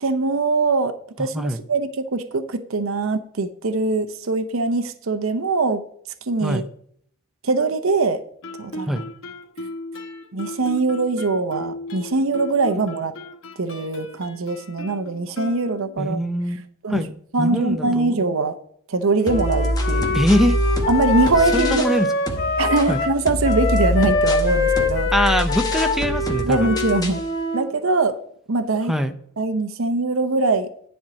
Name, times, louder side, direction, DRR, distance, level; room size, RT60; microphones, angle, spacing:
voice 1, 0.0-5.8 6.3-6.6 7.4-8.2 8.6-9.0 10.3-13.1 13.6-16.2 16.8-17.0 17.3-18.6 18.9-20.2 20.9-21.8 22.6-25.1 26.4-27.2 27.5-28.2 28.5-28.9 29.4-30.9, right 3 dB, 85° right, 9 dB, 0.8 m, -22 dB
voice 2, 1.2-1.6 6.4-6.7 8.9-9.0 16.0-16.6 16.9-17.1 17.4-18.1 20.1-20.6 21.5-22.1 22.9-23.0 25.1-26.7 28.9-29.1, equal, ahead, 6 dB, 0.6 m, -22 dB
Guitar, 8.4-16.1, left 1 dB, 75° left, 1.0 m, -36 dB
Wind instrument woodwind instrument, 19.2-27.7, left 3 dB, 55° left, 1.6 m, -24 dB
sound 1, 19.3-22.0 22.3-27.3, equal, 20° left, 0.9 m, -25 dB
10.5 x 4.5 x 6.1 m, 0.62 s
head